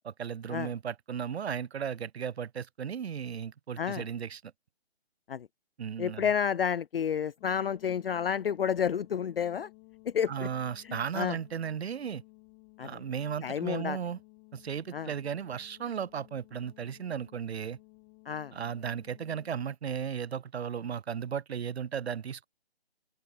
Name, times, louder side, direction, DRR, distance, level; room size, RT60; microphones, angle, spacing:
voice 1, 0.0-4.5 5.8-6.3 10.3-12.2 12.8-14.2 14.5-17.8 18.5-22.5, right 7 dB, 75° right, 0.6 m, -35 dB
voice 2, 6.0-9.7 10.1-10.5 10.8-11.4 12.8-13.0 13.4-14.0 14.9-15.1 18.3-18.5, left 8 dB, 60° left, 0.5 m, -30 dB
sound 1, 7.4-19.8, left 40 dB or more, 20° left, 2.0 m, -57 dB
open air
figure-of-eight pair, 145°, 32 cm